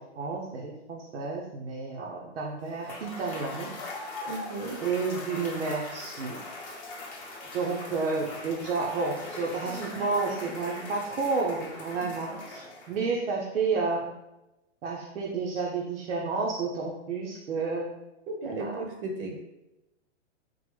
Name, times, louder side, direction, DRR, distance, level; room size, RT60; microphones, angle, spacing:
voice 1, 0.0-3.7 4.8-6.4 7.5-14.1 14.8-17.9 18.6-18.8, right 4 dB, 90° right, -3 dB, 0.7 m, -31 dB
Cheering / Applause / Crowd, 2.7-13.1, left 2 dB, 30° left, 0.7 m, -41 dB
voice 2, 4.3-4.8 12.0-12.1 18.3-19.4, right 2 dB, 50° right, 1 dB, 0.6 m, -35 dB
3.7 x 2.1 x 3.1 m, 0.95 s
hypercardioid pair, 145°, 35 cm